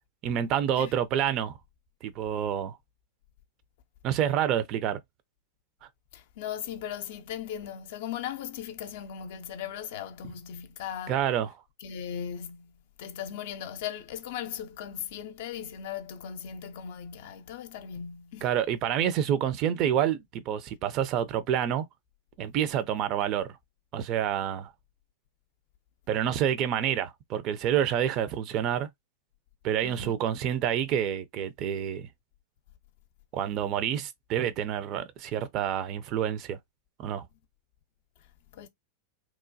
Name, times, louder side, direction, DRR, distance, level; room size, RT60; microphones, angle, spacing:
voice 1, 0.2-1.6 2.0-2.8 4.0-5.0 11.1-11.5 18.4-21.8 22.4-23.5 23.9-24.7 26.1-28.9 29.6-32.1 33.3-36.6 37.0-37.3, right 9 dB, 40° right, 0.4 m, -28 dB
voice 2, 6.1-11.2 11.8-18.5 29.8-30.2 38.5-38.7, left 9 dB, 55° left, 0.4 m, -38 dB
2.9 x 2.1 x 2.5 m
figure-of-eight pair, 90°, 0 cm